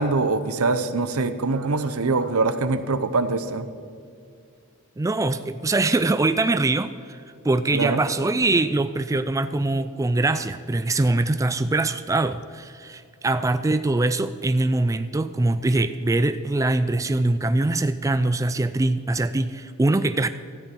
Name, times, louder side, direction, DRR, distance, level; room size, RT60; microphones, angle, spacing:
voice 1, 0.0-3.7 7.7-8.0, right 3 dB, 80° right, 11 dB, 0.9 m, -23 dB
voice 2, 5.0-20.3, right 2 dB, 15° right, 11 dB, 0.3 m, -23 dB
16.0 x 13.5 x 4.6 m, 2.3 s
head